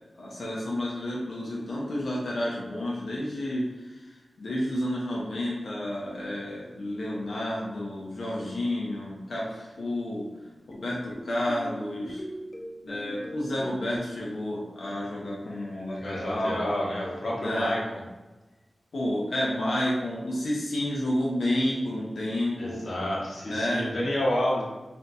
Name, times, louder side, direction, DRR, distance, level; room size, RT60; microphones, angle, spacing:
voice 1, 0.2-10.2 10.7-12.2 12.8-16.7 17.4-17.7 18.9-22.8 23.4-23.8, left 1 dB, 90° left, -5 dB, 0.6 m, -30 dB
sound 1, 10.3-14.0, equal, 35° left, 0.4 m, -41 dB
voice 2, 15.9-18.0 22.6-24.6, left 1 dB, 65° left, -4 dB, 0.9 m, -29 dB
2.6 x 2.3 x 3.9 m, 1.1 s
wide cardioid pair, 110°, 0 cm